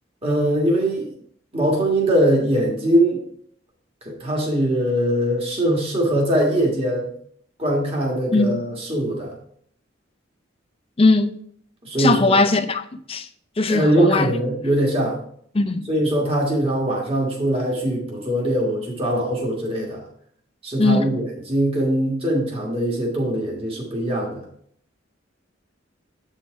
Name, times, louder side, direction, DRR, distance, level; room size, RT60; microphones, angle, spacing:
voice 1, 0.2-1.1 1.5-3.2 4.0-7.1 7.6-9.3 11.8-12.3 13.7-15.2 15.9-20.0 20.6-24.4, right 1 dB, 30° right, 1.6 m, -21 dB
voice 2, 8.3-8.6 11.0-11.3 12.0-13.3 13.6-14.3 15.5-15.9 20.8-21.1, left 3 dB, 30° left, 0.5 m, -19 dB
8.2 x 4.5 x 4.5 m
head